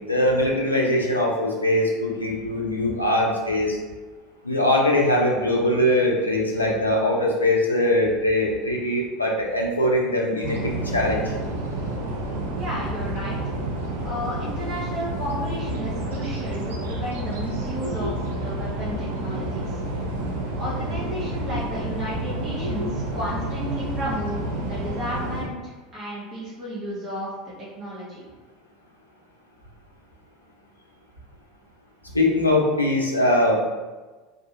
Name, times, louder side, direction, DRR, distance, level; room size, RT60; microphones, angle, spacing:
voice 1, 0.1-3.8 4.4-11.2 32.1-33.6, left 1 dB, 85° left, -2 dB, 0.4 m, -21 dB
sound 1, 10.4-25.5, right 1 dB, 70° right, 0.5 m, -29 dB
voice 2, 12.6-13.5 14.0-19.8 20.6-28.3, equal, 35° right, -8 dB, 0.7 m, -33 dB
2.4 x 2.3 x 2.7 m, 1.3 s
figure-of-eight pair, 70°, 0 cm